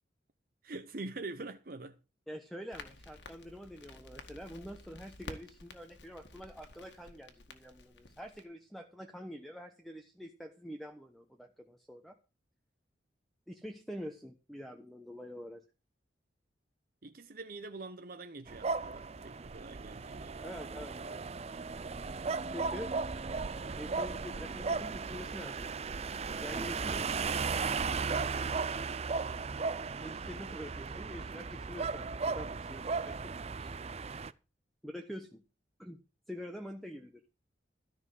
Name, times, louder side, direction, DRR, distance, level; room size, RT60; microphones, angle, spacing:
voice 1, 0.6-2.0 17.0-20.4, right 3 dB, 50° right, 0.9 m, -44 dB
voice 2, 2.3-12.2 13.5-15.6 20.4-21.3 22.5-22.9 23.8-25.7 26.4-27.3 30.0-33.3 33.6-33.7 34.8-35.4 35.8-36.0 36.3-37.2, equal, ahead, 1.1 m, -46 dB
Crackle, 2.7-8.4, left 2 dB, 75° left, 1.9 m, -51 dB
sound 1, 18.5-34.3, right 4 dB, 35° right, 0.5 m, -36 dB
13.5 x 6.0 x 7.7 m
head